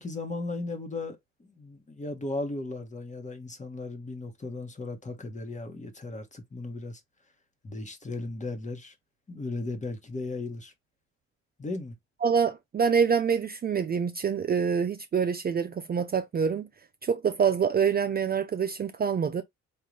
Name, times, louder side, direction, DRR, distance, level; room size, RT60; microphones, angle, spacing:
voice 1, 0.0-7.0 7.6-8.9 9.3-10.7 11.6-11.9, left 2 dB, 25° left, 1.2 m, -36 dB
voice 2, 12.2-16.7 17.0-19.4, right 6 dB, 30° right, 0.4 m, -26 dB
3.8 x 2.5 x 3.0 m
cardioid pair, 90°, 30 cm